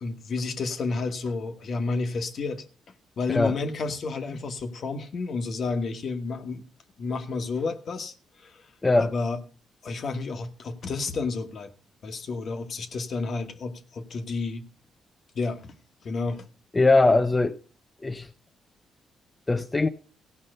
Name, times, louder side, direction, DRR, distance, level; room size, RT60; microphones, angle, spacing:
voice 1, 0.0-2.6 3.2-6.6 7.0-8.1 8.4-8.6 9.0-9.4 9.8-11.7 12.0-14.7 15.3-15.7 16.0-16.4, left 3 dB, 55° left, 1.3 m, -31 dB
voice 2, 8.8-9.1 16.7-17.6 18.0-18.3 19.5-19.9, left 2 dB, 20° left, 0.6 m, -21 dB
16.0 x 5.5 x 6.5 m
cardioid pair, 85°, 0 cm